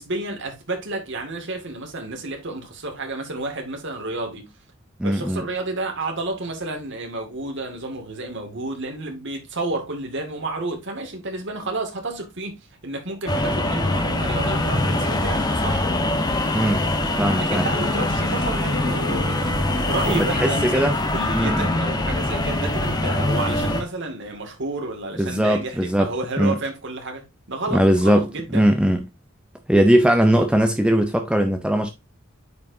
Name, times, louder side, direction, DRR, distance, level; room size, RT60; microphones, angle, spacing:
voice 1, 0.0-4.5 5.0-15.9 17.4-28.7, right 2 dB, 60° right, 2.3 m, -31 dB
voice 2, 5.0-5.4 16.5-16.9 17.1-17.7 20.1-21.0 21.3-21.7 25.2-26.1 26.4-26.5 27.7-29.1 29.7-31.9, equal, 5° right, 0.7 m, -19 dB
sound 1, 13.3-23.8, left 1 dB, 20° left, 1.2 m, -23 dB
9.3 x 5.0 x 2.7 m
head